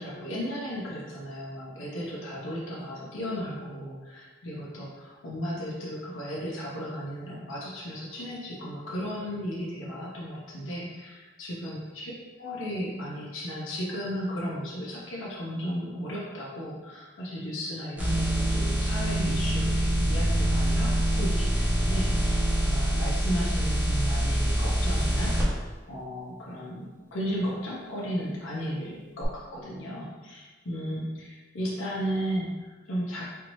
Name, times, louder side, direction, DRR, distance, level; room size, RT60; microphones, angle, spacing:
voice 1, 0.0-12.1 12.4-25.6 25.9-33.4, equal, 80° left, -5 dB, 0.8 m, -35 dB
sound 1, 18.0-25.4 29.2-29.3, right 1 dB, 10° right, 1.0 m, -25 dB
4.6 x 2.7 x 3.1 m, 1.3 s
head